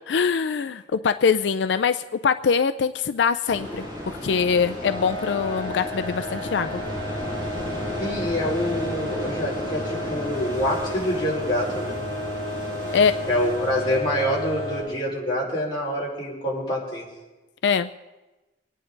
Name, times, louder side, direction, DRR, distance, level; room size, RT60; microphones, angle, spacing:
voice 1, 0.1-3.8 4.2-6.8 12.9-13.2 17.6-17.9, left 6 dB, 80° left, 10 dB, 0.4 m, -23 dB
sound 1, 3.5-14.0, equal, 25° right, 5.8 m, -35 dB
sound 2, 4.8-14.8, left 1 dB, 60° right, 5.8 m, -32 dB
voice 2, 8.0-11.9 13.3-17.1, equal, 25° left, -6 dB, 4.8 m, -26 dB
25.5 x 10.0 x 3.9 m, 1.1 s
head